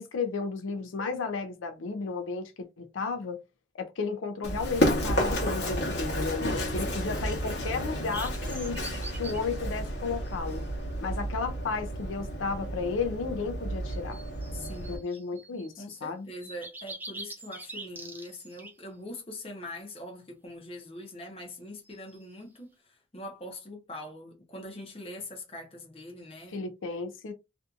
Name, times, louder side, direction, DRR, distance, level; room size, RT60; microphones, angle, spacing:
voice 1, 0.0-3.4 3.7-8.8 9.2-10.6 11.0-14.2 14.9-16.3 26.5-27.3, left 4 dB, 85° left, 0.5 m, -33 dB
Run, 4.4-15.0, equal, 60° left, 1.0 m, -31 dB
sound 1, 8.1-9.4 10.2-10.6 13.9-16.0 16.4-18.7 21.8-22.2, right 2 dB, 10° right, 0.3 m, -44 dB
voice 2, 14.5-15.0 15.8-26.6, left 1 dB, 30° left, 0.8 m, -43 dB
2.6 x 2.5 x 2.3 m
head